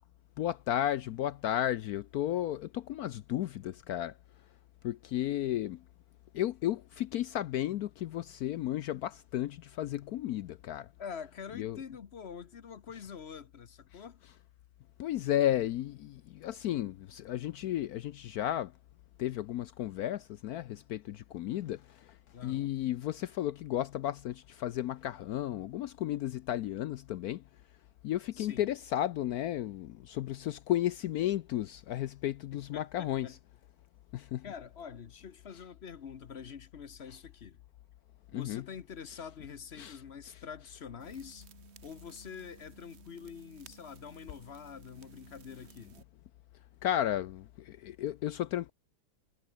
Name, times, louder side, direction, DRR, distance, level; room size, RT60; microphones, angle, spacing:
voice 1, 0.4-4.1 4.8-5.8 6.3-10.9 11.6-11.8 15.0-18.7 19.2-22.2 22.4-27.4 28.0-33.3 34.1-34.5 38.3-38.6 39.8-40.0 46.8-48.7, left 12 dB, 70° left, 0.9 m, -33 dB
voice 2, 11.0-14.2 22.3-22.7 28.3-28.7 32.5-33.4 34.4-37.6 38.3-41.5 41.8-46.0, left 7 dB, 45° left, 1.0 m, -46 dB
sound 1, 41.0-46.0, right 7 dB, 40° right, 1.2 m, -57 dB
omnidirectional pair, 2.0 m